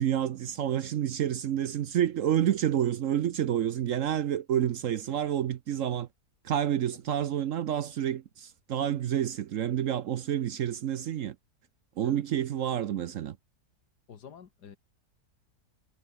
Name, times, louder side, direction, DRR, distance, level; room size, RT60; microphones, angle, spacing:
voice 1, 0.0-6.1 6.4-11.4 12.0-13.4, right 10 dB, 60° right, 0.9 m, -29 dB
voice 2, 14.1-14.8, left 7 dB, 75° left, 2.1 m, -48 dB
omnidirectional pair, 1.8 m